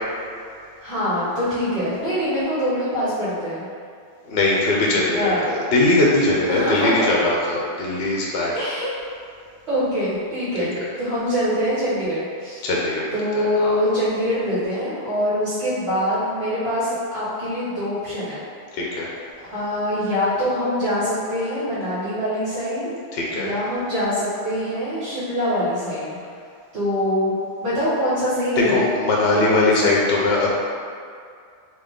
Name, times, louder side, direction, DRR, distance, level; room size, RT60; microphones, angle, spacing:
voice 1, 0.8-3.7 4.9-5.4 6.5-7.1 8.5-8.9 9.7-12.7 13.1-18.4 19.0-19.2 19.5-22.9 23.3-26.2 26.7-28.9 29.3-29.9, equal, 70° right, -16 dB, 1.7 m, -24 dB
voice 2, 4.2-8.5 10.6-10.7 12.6-13.8 18.7-19.1 23.1-23.5 28.7-30.5, left 2 dB, 65° left, -4 dB, 0.8 m, -21 dB
3.4 x 2.9 x 3.6 m, 2.3 s
omnidirectional pair, 1.2 m